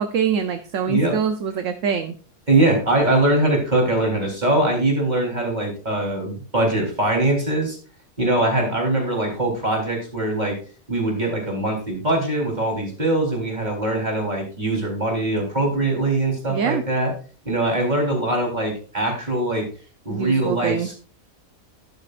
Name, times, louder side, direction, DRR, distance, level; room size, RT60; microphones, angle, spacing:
voice 1, 0.0-2.1 16.5-16.8 20.1-20.9, right 7 dB, 70° right, 9 dB, 1.1 m, -24 dB
voice 2, 0.8-1.2 2.5-7.8 8.2-10.6 10.9-17.1 17.5-19.7 20.1-21.0, right 2 dB, 30° right, 0 dB, 3.9 m, -22 dB
12.0 x 11.0 x 2.5 m, 0.38 s
omnidirectional pair, 1.4 m